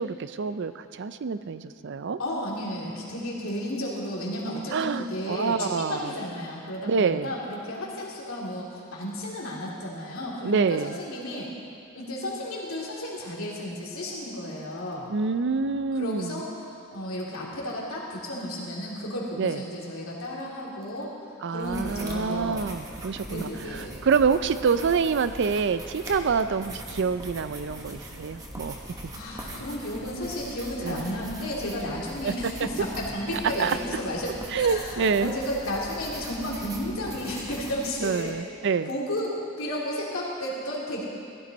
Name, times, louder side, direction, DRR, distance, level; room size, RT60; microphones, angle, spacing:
voice 1, 0.0-2.2 4.7-6.1 6.8-7.3 10.4-11.0 15.1-16.4 19.4-19.6 21.4-28.8 30.8-31.0 32.2-32.5 33.6-33.8 34.5-35.3 38.0-38.9, right 5 dB, 60° right, 12 dB, 0.4 m, -26 dB
voice 2, 2.2-11.5 11.9-15.1 15.9-16.4 16.9-21.1 21.5-22.7 23.3-24.0 28.8-38.3 38.8-41.0, left 1 dB, 80° left, -4 dB, 2.8 m, -33 dB
sound 1, 21.6-38.3, right 1 dB, 15° right, 1.3 m, -41 dB
15.5 x 12.5 x 4.1 m, 2.4 s
head